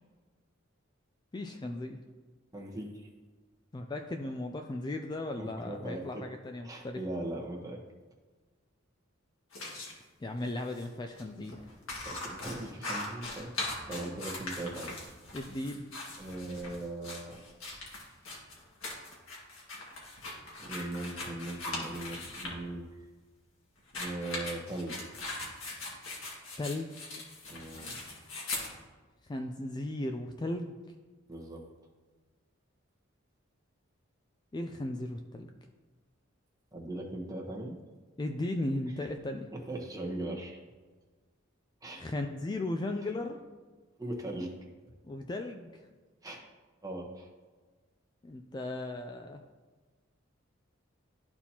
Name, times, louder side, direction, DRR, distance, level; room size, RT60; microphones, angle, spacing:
voice 1, 1.3-2.0 3.7-7.0 10.2-11.6 15.3-15.8 26.6-27.0 29.2-30.8 34.5-35.5 38.2-39.5 42.0-43.4 45.0-45.8 48.2-49.4, left 2 dB, 20° left, 4 dB, 0.3 m, -36 dB
voice 2, 2.5-3.1 5.4-6.3 6.6-7.8 12.0-15.2 16.2-17.4 20.6-23.0 24.0-25.2 27.5-28.0 31.3-31.7 36.7-37.7 39.5-40.6 41.8-42.1 44.0-44.6 46.2-46.5 46.8-47.3, right 1 dB, 20° right, 0 dB, 1.0 m, -39 dB
sound 1, 9.5-9.9 10.7-10.9 11.1-11.2 11.5-22.6 23.8-28.7, left 2 dB, 80° left, 1.8 m, -40 dB
12.0 x 4.3 x 2.9 m, 1.4 s
head